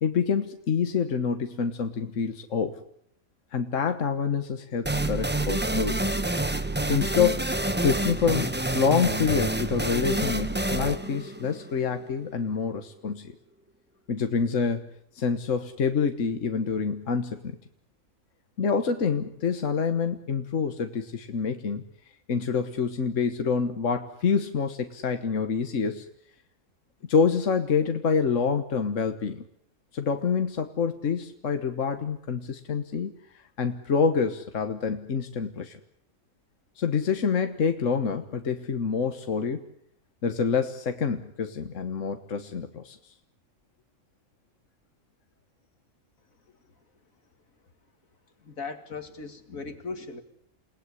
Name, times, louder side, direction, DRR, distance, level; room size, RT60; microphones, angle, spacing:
voice 1, 0.0-2.8 3.5-6.0 6.8-13.3 14.1-14.9 15.2-17.6 18.6-21.8 22.3-26.1 27.1-29.5 29.9-33.1 33.6-35.8 36.8-39.6 40.2-43.0, left 6 dB, 70° left, 7 dB, 1.6 m, -27 dB
sound 1, 4.9-12.3, right 1 dB, 10° right, 0.9 m, -28 dB
voice 2, 48.4-50.2, left 4 dB, 85° left, 8 dB, 2.8 m, -38 dB
29.0 x 18.0 x 9.8 m, 0.71 s
omnidirectional pair, 1.4 m